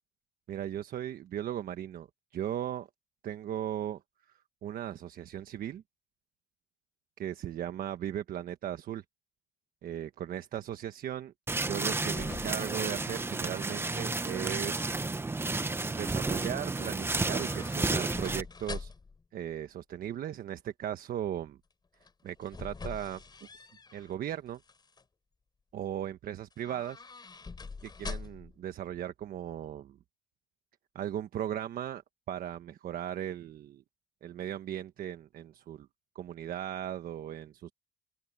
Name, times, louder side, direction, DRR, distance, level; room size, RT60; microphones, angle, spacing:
voice 1, 0.5-2.9 3.2-4.0 4.6-5.8 7.2-9.0 9.8-11.3 11.6-14.9 16.0-18.9 19.3-21.6 22.2-23.2 23.5-24.6 25.7-27.0 27.8-30.0 30.9-32.0 32.3-33.8 34.2-35.9 36.1-37.7, right 10 dB, 60° right, 1.3 m, -37 dB
sound 1, 11.5-18.4, right 3 dB, 15° right, 1.0 m, -32 dB
sound 2, 11.9-14.0 14.3-14.9 17.1-19.2 22.0-24.1 24.5-25.0 26.5-28.6 28.9-29.0, left 4 dB, 25° left, 4.3 m, -45 dB
cardioid pair, 110°, 17 cm